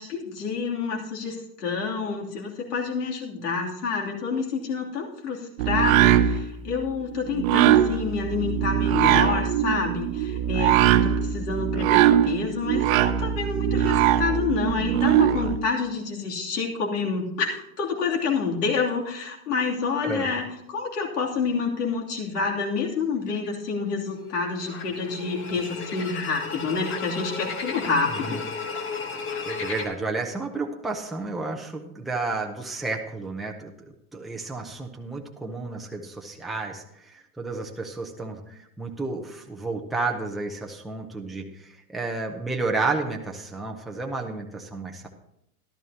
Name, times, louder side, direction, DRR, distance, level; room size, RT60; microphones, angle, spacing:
voice 1, 0.0-28.4, left 4 dB, 90° left, -1 dB, 3.1 m, -28 dB
sound 1, 5.6-15.6, right 11 dB, 60° right, 0.8 m, -21 dB
sound 2, 23.3-23.5 24.3-29.9, left 4 dB, 25° left, 1.3 m, -34 dB
voice 2, 29.2-33.7 34.1-45.1, right 3 dB, ahead, 0 dB, 0.6 m, -31 dB
14.5 x 12.5 x 2.9 m, 0.78 s
supercardioid pair, 145°, 46 cm